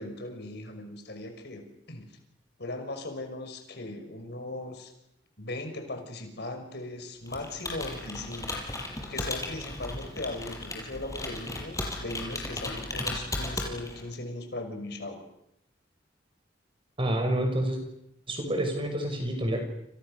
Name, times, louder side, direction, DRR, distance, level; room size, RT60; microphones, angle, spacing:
voice 1, 0.0-2.1 2.6-4.9 5.4-8.6 9.1-15.2, left 2 dB, 65° left, 6 dB, 5.9 m, -38 dB
Computer keyboard, 7.3-14.1, left 2 dB, 20° left, 5.9 m, -36 dB
voice 2, 17.0-17.8 18.3-19.6, right 1 dB, 30° right, 5 dB, 6.4 m, -28 dB
30.0 x 28.0 x 6.7 m, 0.78 s
head